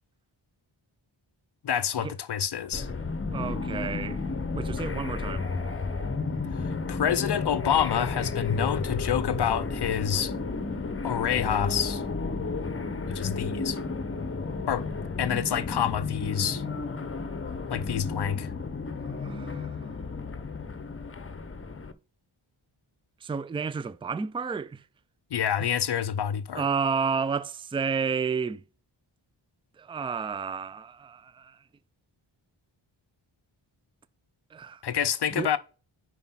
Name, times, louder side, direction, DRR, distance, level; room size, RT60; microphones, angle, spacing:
voice 1, 1.6-2.9 6.6-10.3 11.0-12.0 13.1-13.8 14.7-14.9 15.2-16.6 17.7-18.5 25.3-26.7 34.8-35.6, left 9 dB, 55° left, 0.6 m, -27 dB
sound 1, 2.7-21.9, left 4 dB, 25° left, 0.8 m, -32 dB
voice 2, 3.3-4.2 4.6-5.5 19.2-19.7 23.2-24.8 25.6-25.7 26.5-28.6 29.8-31.6 34.5-34.8 35.3-35.6, right 5 dB, 10° right, 0.3 m, -31 dB
5.3 x 5.0 x 5.7 m
cardioid pair, 45°, 49 cm